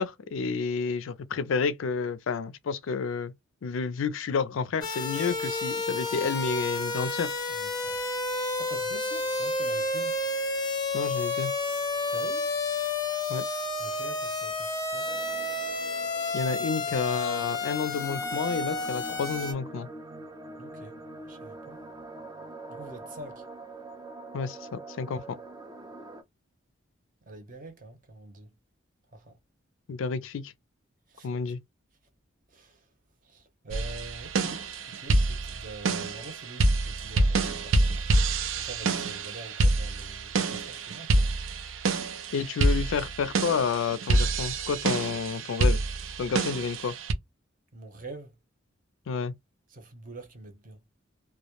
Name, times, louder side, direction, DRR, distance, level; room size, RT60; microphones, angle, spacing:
voice 1, 0.0-3.3 3.6-7.3 10.9-11.5 13.3-13.5 16.3-19.9 24.3-25.2 29.9-30.5 31.2-31.6 42.3-45.8 46.2-47.0 49.1-49.3, left 5 dB, 80° left, 0.4 m, -30 dB
sound 1, 4.8-19.5, left 2 dB, 20° left, 0.6 m, -31 dB
voice 2, 7.5-8.0 8.6-10.2 12.1-12.5 13.8-15.1 20.6-21.0 21.2-21.8 22.7-23.4 27.3-28.5 29.1-29.4 31.1-31.3 32.5-32.8 33.2-34.7 35.0-38.2 38.6-41.3 47.7-48.3 49.7-50.8, right 2 dB, 45° right, 0.7 m, -45 dB
sound 2, 15.0-26.2, right 2 dB, 20° right, 0.3 m, -44 dB
sound 3, 33.7-47.1, right 2 dB, 80° right, 0.5 m, -27 dB
2.2 x 2.0 x 2.8 m
head